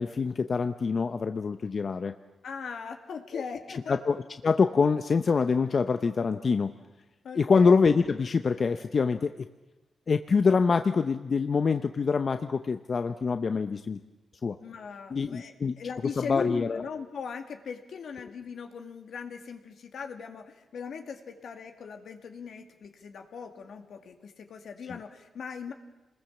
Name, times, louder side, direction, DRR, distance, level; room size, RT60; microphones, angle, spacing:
voice 1, 0.0-2.1 3.9-6.7 7.3-9.3 10.1-14.0 14.4-14.6 15.1-15.8 16.2-16.8 24.9-25.0, left 5 dB, 50° left, 8 dB, 0.8 m, -25 dB
voice 2, 2.4-4.0 7.2-7.8 14.6-25.7, left 6 dB, 75° left, 5 dB, 2.2 m, -39 dB
27.5 x 20.5 x 7.3 m, 1.1 s
cardioid pair, 85°, 0 cm